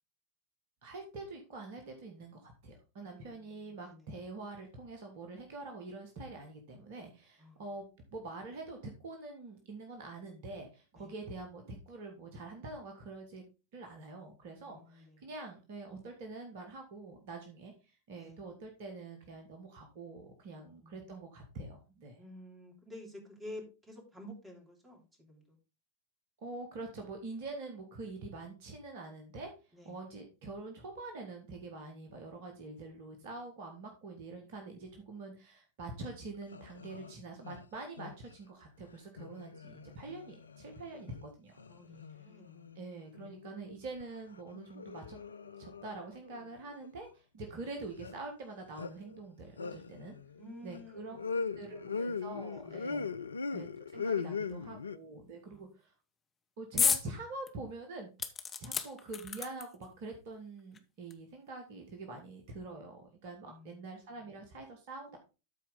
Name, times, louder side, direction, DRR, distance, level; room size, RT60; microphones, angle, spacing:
voice 1, 0.8-7.8 8.1-13.4 13.7-22.2 26.4-41.6 42.7-45.2 45.6-50.1 50.6-51.2 51.6-53.1 53.5-55.9 56.6-58.1 58.6-65.2, right 3 dB, 50° right, 1.6 m, -45 dB
voice 2, 3.1-4.1 7.4-7.6 11.0-11.1 14.6-15.3 18.2-18.4 20.6-21.0 22.2-25.6 29.7-29.9 41.7-43.3 47.4-47.6 50.4-51.3 51.7-52.2 52.5-53.1 55.5-55.6 63.4-63.8, left 1 dB, 15° right, 3.1 m, -52 dB
sound 1, 36.1-36.2 36.4-37.1 37.4-38.3 39.2-41.3 41.6-42.8 43.1-44.2 44.5-46.9 48.0-48.2 48.8-49.2 49.6-55.0, left 5 dB, 75° left, 0.4 m, -40 dB
sound 2, 56.8-57.1 57.5-57.6 58.2-59.9 60.7-60.8 61.1-61.2, left 6 dB, 20° left, 1.0 m, -32 dB
13.0 x 4.5 x 3.7 m
figure-of-eight pair, 90°, 0 cm